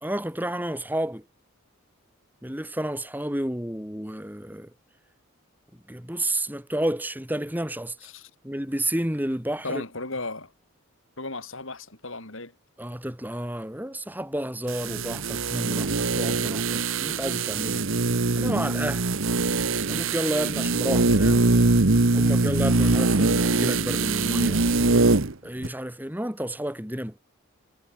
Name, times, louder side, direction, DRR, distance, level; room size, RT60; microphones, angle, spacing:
voice 1, 0.0-1.3 2.4-4.7 5.9-8.0 8.4-9.8 12.8-17.8 18.4-19.1 19.9-21.5 22.1-24.6 25.4-27.2, right 1 dB, 10° right, 3.1 m, -30 dB
voice 2, 9.6-10.5 11.2-12.5, left 2 dB, 65° left, 5.0 m, -35 dB
sound 1, 14.7-25.3 25.6-25.7, right 3 dB, 65° right, 1.2 m, -23 dB
head